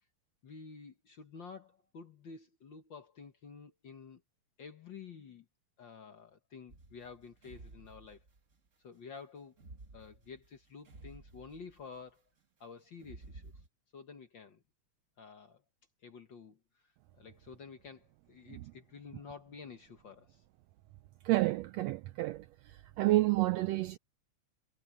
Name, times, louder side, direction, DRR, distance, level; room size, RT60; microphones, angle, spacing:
voice 1, 0.4-4.2 4.6-5.4 5.8-8.3 8.8-9.6 9.9-12.2 12.6-13.5 13.9-14.6 15.2-15.6 16.0-16.6 17.1-20.4, left 5 dB, 50° left, 1.6 m, -50 dB
sound 1, 6.7-8.7 9.5-12.0 12.9-13.7, right 2 dB, 30° right, 1.6 m, -53 dB
voice 2, 21.2-22.4 23.0-24.0, right 18 dB, 80° right, 1.5 m, -29 dB
omnidirectional pair, 3.4 m